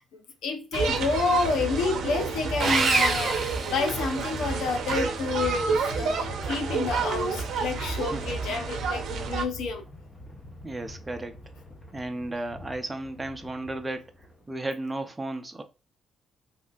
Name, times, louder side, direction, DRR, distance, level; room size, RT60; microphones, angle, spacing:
voice 1, 0.1-9.8, left 4 dB, 80° left, 0.6 m, -29 dB
sound 1, 0.7-14.7, left 1 dB, 20° left, 0.9 m, -43 dB
sound 2, 0.7-9.4, right 5 dB, 75° right, 0.6 m, -30 dB
Sawing, 2.6-4.5, right 4 dB, 45° right, 0.9 m, -26 dB
voice 2, 10.6-11.4 11.9-15.6, right 2 dB, 15° right, 0.6 m, -34 dB
3.1 x 2.7 x 2.3 m
cardioid pair, 90°, 0 cm